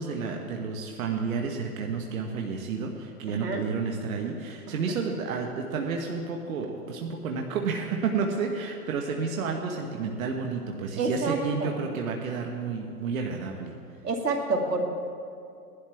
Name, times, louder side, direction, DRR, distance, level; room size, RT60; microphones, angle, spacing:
voice 1, 0.0-13.7, right 5 dB, 60° right, 1 dB, 1.4 m, -31 dB
voice 2, 3.3-3.6 11.0-11.7 14.0-14.8, right 3 dB, 90° right, 2 dB, 2.2 m, -28 dB
18.5 x 11.5 x 3.5 m, 2.5 s
hypercardioid pair, 140°, 47 cm